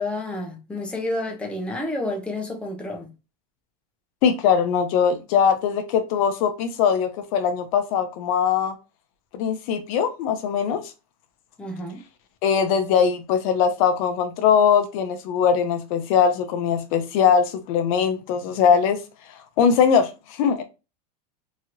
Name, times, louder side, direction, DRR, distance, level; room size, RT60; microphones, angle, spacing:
voice 1, 0.0-3.1 11.6-12.0, left 2 dB, 5° left, 0.6 m, -30 dB
voice 2, 4.2-8.7 9.3-10.8 12.4-19.0 19.6-20.6, left 7 dB, 60° left, 0.6 m, -21 dB
3.0 x 2.8 x 2.6 m
supercardioid pair, 145°, 20 cm